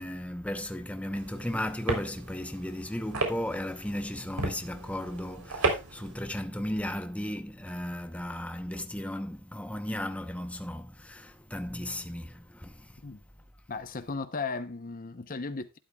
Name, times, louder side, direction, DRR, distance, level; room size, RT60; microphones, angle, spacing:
voice 1, 0.0-12.9, left 1 dB, 5° left, 0.9 m, -35 dB
sound 1, 1.1-6.1, right 3 dB, 85° right, 3.6 m, -34 dB
voice 2, 13.7-15.8, left 4 dB, 40° left, 0.8 m, -36 dB
12.5 x 11.5 x 2.3 m
head